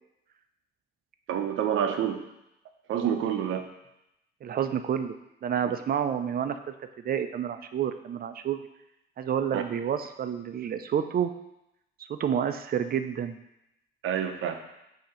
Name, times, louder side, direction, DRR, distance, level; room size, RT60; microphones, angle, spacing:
voice 1, 1.3-2.2 2.9-3.7 9.5-9.6 14.0-14.6, right 9 dB, 80° right, 6 dB, 0.7 m, -28 dB
voice 2, 4.4-5.2 5.4-6.6 7.0-8.6 9.2-11.3 12.1-13.4, right 8 dB, 50° right, 9 dB, 0.5 m, -29 dB
6.6 x 2.9 x 5.7 m, 0.86 s
cardioid pair, 90°, 20 cm